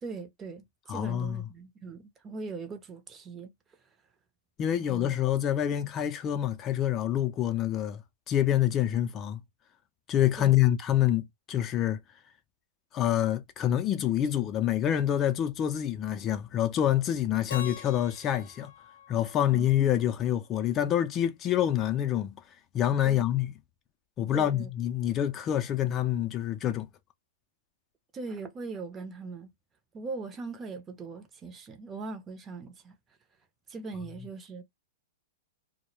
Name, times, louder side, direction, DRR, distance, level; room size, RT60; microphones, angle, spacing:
voice 1, 0.0-3.5 4.7-5.1 10.4-10.6 19.5-19.9 23.0-23.3 24.3-24.7 28.1-29.5 29.9-32.9 33.7-34.6, right 4 dB, 20° right, 0.6 m, -40 dB
voice 2, 0.9-1.4 4.6-8.0 8.3-9.4 10.1-12.0 12.9-18.7 19.1-22.3 22.7-23.5 24.2-26.9, left 11 dB, 30° left, 0.4 m, -27 dB
Keyboard (musical), 17.5-20.5, left 8 dB, 75° left, 0.5 m, -45 dB
2.1 x 2.0 x 3.0 m
hypercardioid pair, 130°, 0 cm